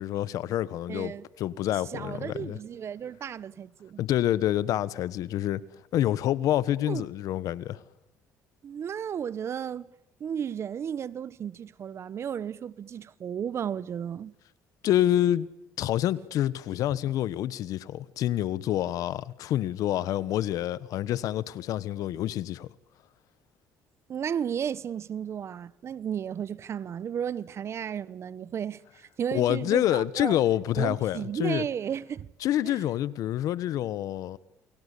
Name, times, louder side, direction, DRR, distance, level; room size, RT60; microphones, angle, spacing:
voice 1, 0.0-2.6 4.0-5.6 5.9-7.8 14.8-15.5 15.8-22.7 29.3-31.7 32.4-34.4, left 12 dB, 70° left, 1.2 m, -27 dB
voice 2, 0.9-1.3 1.9-4.0 6.9-7.0 8.6-9.9 10.2-14.3 24.1-30.4 30.8-32.3 32.6-32.8, right 8 dB, 45° right, 1.0 m, -34 dB
29.0 x 23.0 x 8.4 m
cardioid pair, 100°, 6 cm